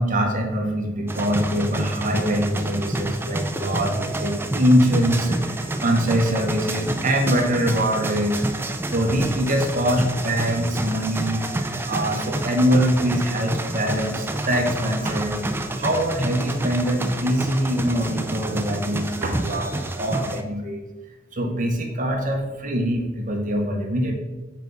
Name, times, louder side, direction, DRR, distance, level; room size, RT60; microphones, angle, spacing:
voice 1, 0.0-8.7 8.9-11.5 11.8-15.4 15.8-20.8 21.3-24.1, equal, 40° right, 3 dB, 0.9 m, -23 dB
sound 1, 1.1-20.4, right 1 dB, 10° right, 0.3 m, -29 dB
7.4 x 4.7 x 4.0 m, 1.2 s
head